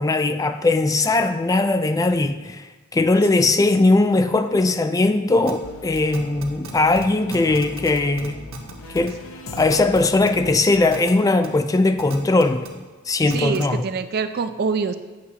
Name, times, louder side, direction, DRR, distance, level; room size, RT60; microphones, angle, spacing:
voice 1, 0.0-2.7 2.9-8.4 8.9-9.1 9.5-12.6 13.1-13.8, left 2 dB, 15° left, 0.3 m, -19 dB
sound 1, 5.5-5.6 6.1-6.7 7.0-7.1 7.3-7.9 8.2-8.7 9.1-9.2 9.6-9.8 10.3-10.4 10.9-11.1 11.4-11.5 12.0-12.7 13.3-13.6, right 3 dB, 70° right, 1.2 m, -36 dB
sound 2, 5.6-10.8, left 2 dB, 85° left, 0.9 m, -39 dB
voice 2, 13.3-15.0, right 5 dB, 50° right, 0.4 m, -25 dB
9.5 x 7.7 x 2.9 m
head